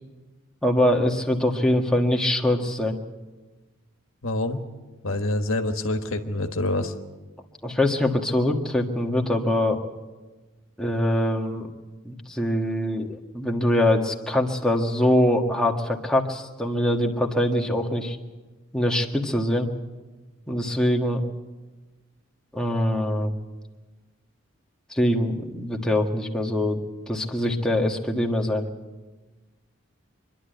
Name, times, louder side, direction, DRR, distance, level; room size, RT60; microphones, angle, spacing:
voice 1, 0.6-3.0 7.6-9.9 10.8-11.7 12.0-18.2 18.7-19.7 20.5-21.2 22.5-23.3 24.9-26.8 27.1-28.7, left 1 dB, 5° left, 0 dB, 1.5 m, -23 dB
voice 2, 4.2-4.6 5.0-6.9, left 2 dB, 75° left, 6 dB, 1.4 m, -26 dB
25.5 x 11.5 x 9.2 m, 1.2 s
head